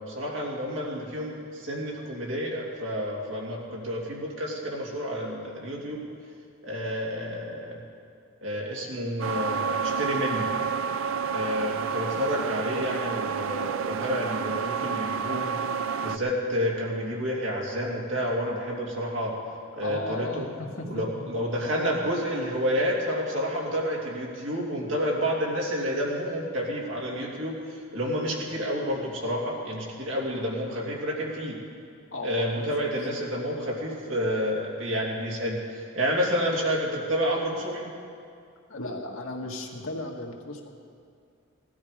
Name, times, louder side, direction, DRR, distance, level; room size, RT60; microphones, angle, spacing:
voice 1, 0.0-6.0 6.6-7.8 8.4-10.5 11.3-15.6 16.0-19.3 19.8-20.5 20.9-31.6 32.2-37.9, equal, 65° right, -3 dB, 2.9 m, -29 dB
sound 1, 9.2-16.2, right 6 dB, 80° right, 0.5 m, -29 dB
voice 2, 19.8-20.9 21.2-21.3 32.1-32.9 38.7-40.7, left 2 dB, 85° left, 0 dB, 1.7 m, -36 dB
17.5 x 12.5 x 5.0 m, 2.4 s
head